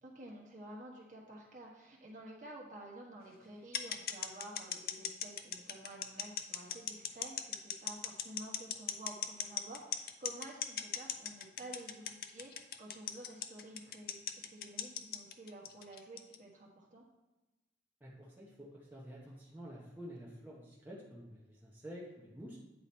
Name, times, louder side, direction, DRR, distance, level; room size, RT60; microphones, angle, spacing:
voice 1, 0.0-17.1, right 1 dB, 45° right, -2 dB, 1.4 m, -51 dB
sound 1, 3.7-16.4, left 9 dB, 55° left, 0.4 m, -38 dB
voice 2, 18.0-22.6, equal, 10° right, -5 dB, 1.0 m, -49 dB
8.9 x 3.8 x 4.3 m, 1.0 s
head